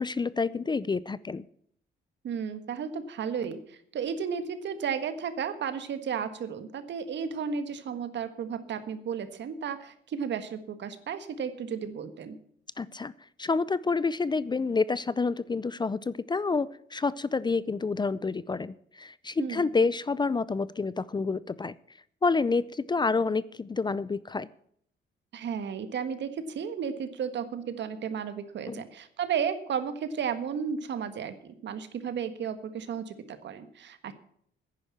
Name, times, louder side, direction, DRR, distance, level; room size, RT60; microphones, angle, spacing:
voice 1, 0.0-1.5 12.8-13.1 13.4-21.7 22.2-24.5 28.7-28.8, left 4 dB, 20° left, 18 dB, 0.5 m, -28 dB
voice 2, 2.2-12.4 19.4-19.7 25.3-34.1, right 7 dB, 65° right, 10 dB, 1.6 m, -33 dB
10.0 x 10.0 x 7.5 m, 0.64 s
cardioid pair, 90°, 20 cm